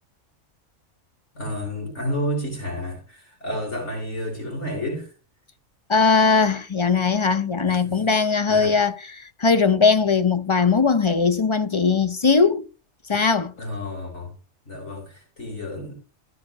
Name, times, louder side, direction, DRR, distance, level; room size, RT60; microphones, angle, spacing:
voice 1, 1.3-5.1 7.6-8.1 8.5-8.8 13.6-14.3 14.7-15.9, equal, 60° left, 4.1 m, -31 dB
voice 2, 5.9-12.7 13.1-13.5, left 5 dB, 40° left, 0.4 m, -20 dB
14.0 x 5.7 x 5.2 m
omnidirectional pair, 1.3 m